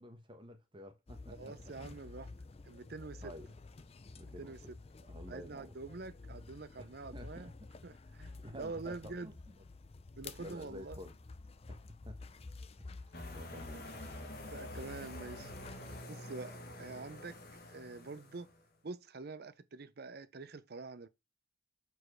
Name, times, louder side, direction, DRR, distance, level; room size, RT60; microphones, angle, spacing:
voice 1, 0.0-1.7 2.1-2.2 3.2-3.5 4.1-4.5 5.0-5.7 6.8-6.9 7.1-7.5 8.1-9.5 10.4-11.1 11.7-12.2 12.8-13.9, equal, 25° right, 1.2 m, -51 dB
sound 1, 1.1-16.0, left 3 dB, 30° left, 0.4 m, -51 dB
voice 2, 1.4-2.3 2.6-3.3 4.4-4.8 5.3-7.5 7.8-9.3 10.2-11.0 13.7-13.8 14.5-15.5 16.1-17.4 17.7-18.5 18.8-21.1, right 3 dB, 50° right, 0.6 m, -46 dB
sound 2, 13.1-18.6, left 1 dB, 50° left, 1.4 m, -48 dB
4.8 x 4.6 x 6.1 m
head